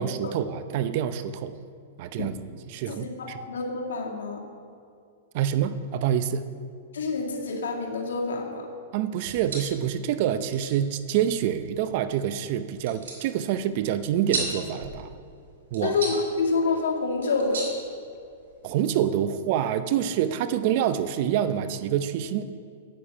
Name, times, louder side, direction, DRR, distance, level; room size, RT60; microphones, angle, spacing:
voice 1, 0.0-1.5 2.0-2.4 2.7-3.4 5.3-6.4 8.9-15.1 15.7-16.0 18.6-22.4, right 10 dB, 50° right, 11 dB, 0.6 m, -26 dB
voice 2, 2.9-4.4 6.9-8.7 15.8-17.7, left 4 dB, 85° left, 0 dB, 1.9 m, -27 dB
sound 1, 9.2-18.6, right 3 dB, 80° right, 2.9 m, -38 dB
8.9 x 8.7 x 5.5 m, 2.3 s
hypercardioid pair, 135°, 0 cm